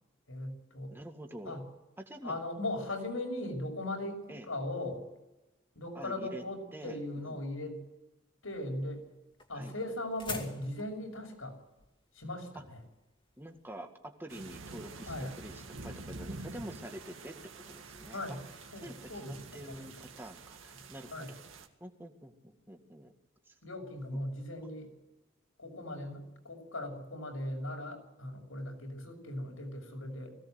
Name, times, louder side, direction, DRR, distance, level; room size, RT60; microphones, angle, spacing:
voice 1, 0.3-0.9 1.4-1.6 2.2-5.1 5.7-7.8 8.4-9.0 9.5-11.6 12.1-12.8 15.1-15.3 18.1-18.4 18.7-20.0 21.1-21.3 23.6-24.9 25.6-30.4, left 1 dB, 90° left, 2 dB, 6.3 m, -39 dB
voice 2, 0.9-1.7 2.0-2.4 4.3-4.5 6.0-6.4 6.7-7.4 9.5-9.8 12.5-12.6 13.4-18.4 18.8-21.4 21.8-23.1 23.5-23.6 24.1-24.2, right 1 dB, 10° right, 4 dB, 1.9 m, -47 dB
sound 1, 8.5-13.7, left 4 dB, 25° left, 2.4 m, -47 dB
sound 2, 14.3-21.7, right 2 dB, 75° right, 2.2 m, -47 dB
21.0 x 17.0 x 7.9 m, 0.99 s
head